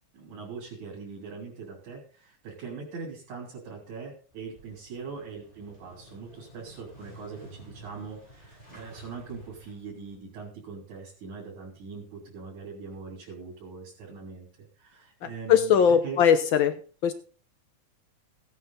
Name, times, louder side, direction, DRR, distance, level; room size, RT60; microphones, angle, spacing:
voice 1, 0.1-14.5 14.8-16.2, right 5 dB, 80° right, -4 dB, 4.9 m, -41 dB
Motorcycle / Engine starting, 4.3-10.2, right 1 dB, 10° left, 7.8 m, -51 dB
voice 2, 15.5-16.7 17.0-17.1, left 8 dB, 85° left, 10 dB, 1.1 m, -20 dB
17.0 x 9.2 x 4.0 m, 0.39 s
omnidirectional pair, 3.4 m